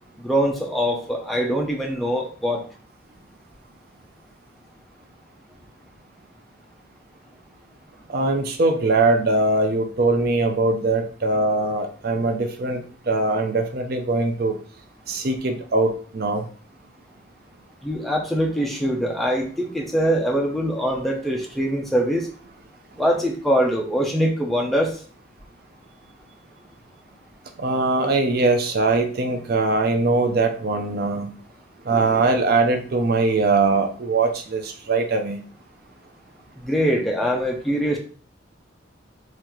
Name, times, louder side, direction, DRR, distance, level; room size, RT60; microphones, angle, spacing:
voice 1, 0.2-2.6 17.8-22.3 23.0-25.0 36.6-38.0, equal, ahead, 0 dB, 0.5 m, -23 dB
voice 2, 8.1-14.6 15.1-16.5 27.6-31.3 31.9-35.4, right 3 dB, 50° right, 5 dB, 0.5 m, -21 dB
3.8 x 3.2 x 3.0 m, 0.42 s
head